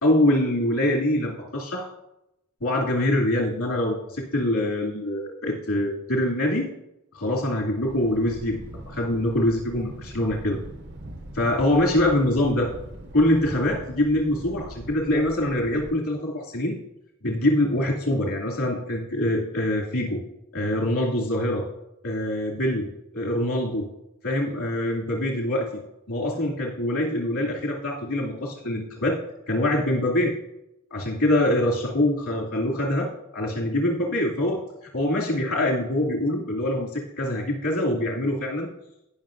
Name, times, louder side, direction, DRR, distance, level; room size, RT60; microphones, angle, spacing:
voice 1, 0.0-1.9 2.6-6.7 7.1-8.6 8.8-10.6 11.3-12.7 13.1-16.7 17.2-20.2 20.5-21.7 22.0-22.9 23.1-23.9 24.2-25.7 26.1-29.2 29.5-30.3 30.9-34.6 34.9-38.7, left 1 dB, 80° left, -2 dB, 2.6 m, -24 dB
Thunder, 7.9-15.9, right 1 dB, 50° right, 0.8 m, -41 dB
18.5 x 6.2 x 2.6 m, 0.87 s
head